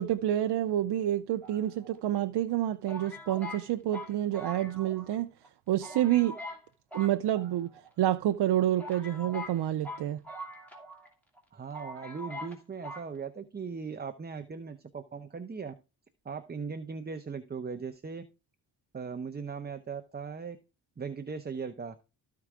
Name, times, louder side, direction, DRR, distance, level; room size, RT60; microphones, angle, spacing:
voice 1, 0.0-5.3 5.7-6.4 6.9-7.7 8.0-10.2, right 12 dB, 70° right, 0.6 m, -28 dB
sound 1, 1.4-2.2 2.9-5.2 5.4-5.5 5.8-6.6 6.9-7.9 8.4-8.5 8.8-11.1 11.4-11.5 11.7-12.6 12.8-13.1, left 1 dB, 5° left, 2.7 m, -43 dB
voice 2, 11.5-15.7 16.2-18.2 18.9-20.6 21.0-22.0, right 5 dB, 25° right, 0.7 m, -39 dB
13.5 x 4.8 x 3.7 m
cardioid pair, 115°, 41 cm